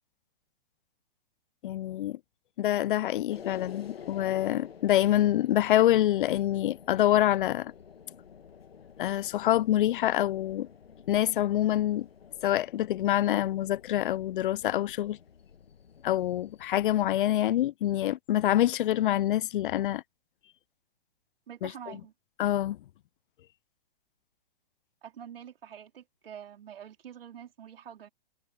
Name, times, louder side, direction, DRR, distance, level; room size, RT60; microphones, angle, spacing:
voice 1, 1.6-2.2 2.6-7.7 9.0-10.7 11.1-12.1 12.4-15.2 16.0-20.0 21.6-21.7 22.4-22.8, left 13 dB, 60° left, 0.5 m, -26 dB
sound 1, 3.3-17.0, left 7 dB, 80° left, 1.6 m, -50 dB
voice 2, 21.5-22.1 25.0-28.1, right 9 dB, 70° right, 3.7 m, -46 dB
hypercardioid pair, 120°, 29 cm